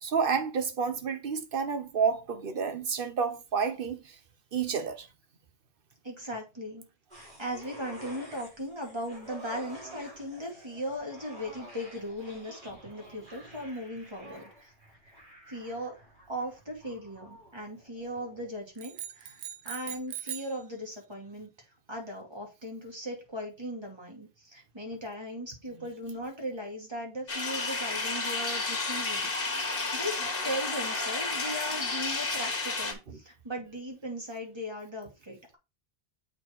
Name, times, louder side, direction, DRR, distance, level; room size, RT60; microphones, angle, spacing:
voice 1, 0.0-4.1 4.5-5.1 33.1-33.2, right 6 dB, 60° right, 1.1 m, -30 dB
voice 2, 6.0-6.8 7.1-14.7 15.0-15.1 15.5-16.0 16.3-21.5 21.9-29.3 29.6-35.6, equal, 25° right, 2.5 m, -38 dB
sound 1, 7.1-18.6 19.0-19.1, equal, 45° right, 3.5 m, -50 dB
sound 2, 18.8-20.6, right 11 dB, 90° right, 0.9 m, -40 dB
sound 3, 27.3-32.9, left 3 dB, 65° left, 1.7 m, -31 dB
7.8 x 3.9 x 4.5 m
omnidirectional pair, 1.0 m